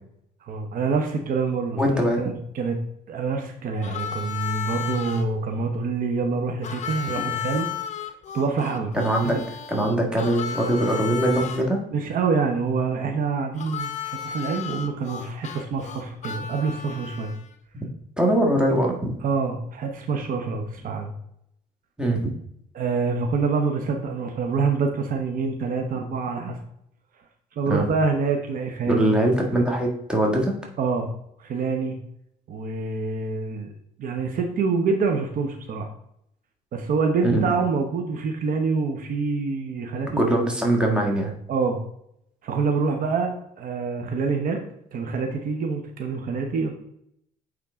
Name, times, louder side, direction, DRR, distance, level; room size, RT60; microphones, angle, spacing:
voice 1, 0.4-2.8 3.1-7.7 8.3-8.9 9.2-9.4 11.9-17.3 19.2-21.1 22.7-26.6 27.6-29.1 30.8-31.1 31.4-32.0 32.5-33.7 34.0-35.9 36.7-40.2 41.5-41.8 42.4-44.6 44.9-46.7, right 4 dB, 55° right, 4 dB, 0.9 m, -26 dB
voice 2, 1.8-2.2 8.9-9.4 9.7-11.8 17.7-17.8 18.2-19.2 22.0-22.3 27.7-27.8 28.8-30.6 37.2-37.4 40.2-41.3, right 1 dB, 5° right, 0 dB, 1.7 m, -22 dB
Harmonica, 3.8-5.2 6.6-11.6 13.6-17.5, left 8 dB, 45° left, 0.8 m, -33 dB
8.7 x 3.7 x 3.6 m, 0.74 s
cardioid pair, 110°, 17 cm